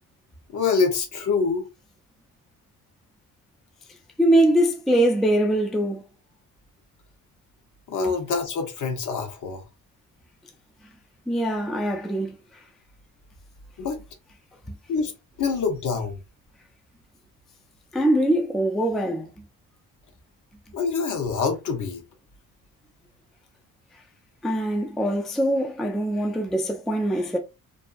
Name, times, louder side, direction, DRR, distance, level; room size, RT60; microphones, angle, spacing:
voice 1, 0.5-1.6 7.9-9.6 13.8-14.0 14.9-15.1 15.4-16.2 20.7-22.0, left 5 dB, 60° left, 0.8 m, -25 dB
voice 2, 4.2-6.0 11.3-12.3 17.9-19.3 24.4-27.4, right 1 dB, ahead, 0.3 m, -22 dB
2.5 x 2.3 x 2.4 m
cardioid pair, 105°, 34 cm